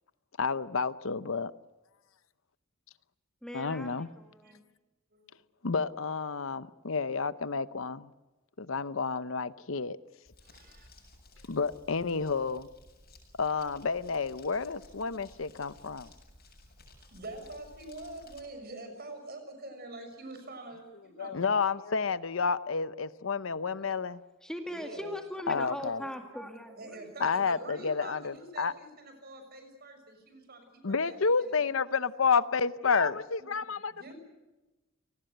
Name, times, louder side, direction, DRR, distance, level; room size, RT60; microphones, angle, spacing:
voice 1, 0.4-1.5 3.5-4.1 5.6-8.1 8.6-10.0 11.5-12.7 13.4-16.1 21.2-24.2 25.5-26.0 27.2-28.7 30.8-34.1, left 5 dB, 70° left, 0.8 m, -30 dB
voice 2, 3.4-4.6 23.7-24.1 24.4-27.1, left 1 dB, 5° left, 2.0 m, -40 dB
Crumpling crinkling, 10.3-18.4, left 2 dB, 50° left, 7.6 m, -56 dB
voice 3, 10.4-10.9 11.3-11.5 17.0-21.7 22.0-22.2 24.7-25.1 25.5-25.6 25.9-26.1 26.7-31.6 31.9-32.0 33.4-34.1, right 2 dB, 50° right, 6.6 m, -46 dB
29.0 x 19.5 x 8.0 m
head